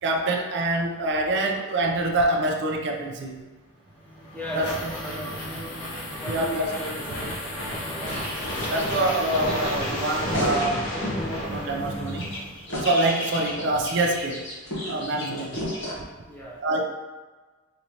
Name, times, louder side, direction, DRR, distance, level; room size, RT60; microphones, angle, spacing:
voice 1, 0.0-3.4 4.5-4.8 6.2-6.8 8.7-10.9 11.4-12.4 12.8-14.5 14.9-15.6 16.0-16.1 16.6-16.8, right 2 dB, 55° right, 2 dB, 0.4 m, -25 dB
sound 1, 3.9-12.8, equal, 80° left, 1.1 m, -32 dB
voice 2, 4.3-5.3 6.2-7.4 16.2-16.6, equal, 10° left, -5 dB, 0.5 m, -36 dB
sound 2, 8.1-11.2 11.5-15.9, equal, 60° left, 1.0 m, -33 dB
4.0 x 3.0 x 2.8 m, 1.3 s
head